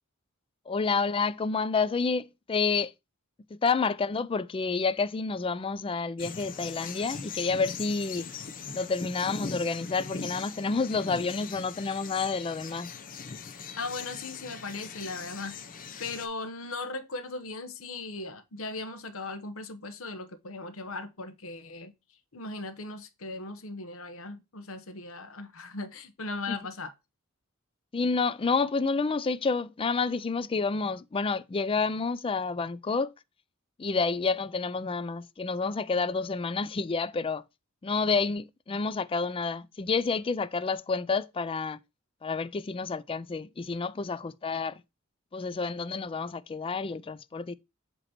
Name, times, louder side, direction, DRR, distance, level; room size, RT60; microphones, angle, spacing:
voice 1, 0.7-2.9 3.6-8.3 8.7-12.9 26.5-26.6 27.9-33.1 33.8-37.4 37.8-41.8 42.2-44.8 45.3-47.6, left 4 dB, 25° left, 0.4 m, -29 dB
sound 1, 6.2-16.3, left 5 dB, 40° left, 0.7 m, -40 dB
voice 2, 13.8-15.6 16.0-21.9 22.3-26.9, left 3 dB, 85° left, 1.0 m, -38 dB
7.8 x 3.0 x 4.3 m
head